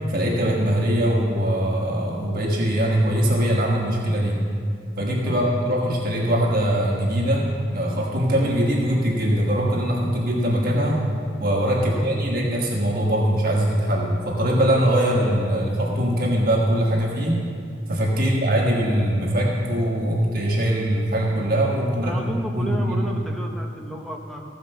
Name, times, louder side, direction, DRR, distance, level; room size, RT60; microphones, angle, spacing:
voice 1, 0.1-4.4 5.0-11.0 11.4-17.4 17.9-23.1, equal, 50° right, -2 dB, 1.4 m, -22 dB
voice 2, 5.2-5.5 11.8-12.1 18.1-18.4 22.0-24.4, right 1 dB, ahead, 1 dB, 0.9 m, -33 dB
15.0 x 5.1 x 6.4 m, 2.3 s
head